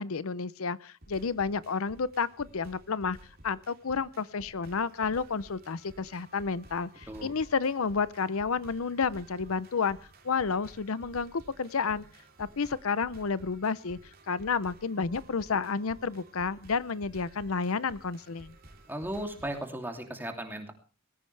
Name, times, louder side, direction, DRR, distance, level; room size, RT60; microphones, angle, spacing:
voice 1, 0.0-3.2 3.4-10.0 10.2-12.1 12.4-14.0 14.3-18.6, left 5 dB, 75° left, 18 dB, 0.7 m, -31 dB
sound 1, 1.0-19.7, right 1 dB, 45° right, 3.3 m, -54 dB
voice 2, 18.9-20.7, right 1 dB, 10° right, 4 dB, 2.8 m, -36 dB
19.5 x 16.5 x 3.4 m, 0.36 s
head